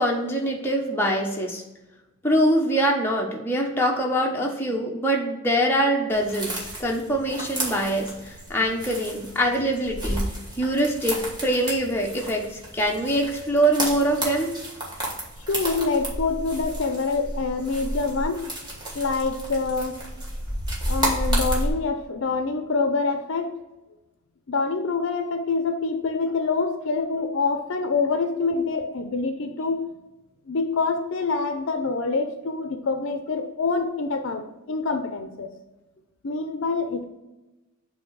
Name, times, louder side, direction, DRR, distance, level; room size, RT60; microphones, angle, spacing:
voice 1, 0.0-1.6 2.2-10.3 10.6-14.5, right 1 dB, 10° left, -1 dB, 0.9 m, -24 dB
sound 1, 6.1-21.7, right 1 dB, 20° right, 1.4 m, -31 dB
voice 2, 15.5-18.5 18.9-20.0 20.9-23.5 24.5-29.9 30.5-35.5 36.2-37.1, left 4 dB, 65° left, 7 dB, 0.5 m, -26 dB
7.8 x 2.8 x 4.6 m, 1.0 s
head